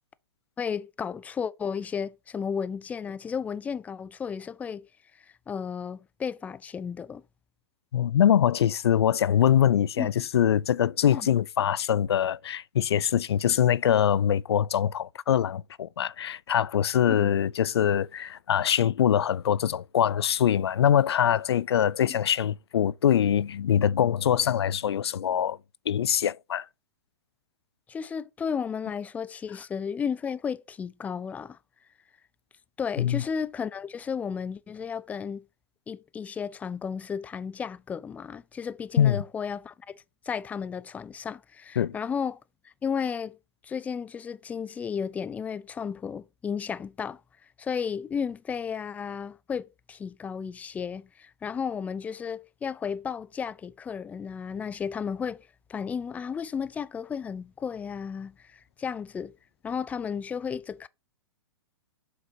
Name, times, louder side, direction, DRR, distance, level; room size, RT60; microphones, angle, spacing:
voice 1, 0.6-4.9 5.2-7.2 10.0-10.1 11.1-11.3 17.1-17.3 22.1-22.2 27.9-31.6 32.8-35.4 35.9-39.9 40.2-42.4 42.6-43.4 43.6-47.2 47.6-55.4 55.7-59.3 59.6-60.9, left 6 dB, 10° left, 0.3 m, -33 dB
voice 2, 7.9-25.6 25.9-26.6 33.0-33.2 39.0-39.2 41.8-41.9, left 9 dB, 85° left, 0.4 m, -23 dB
7.7 x 5.9 x 2.8 m
hypercardioid pair, 125°, 13 cm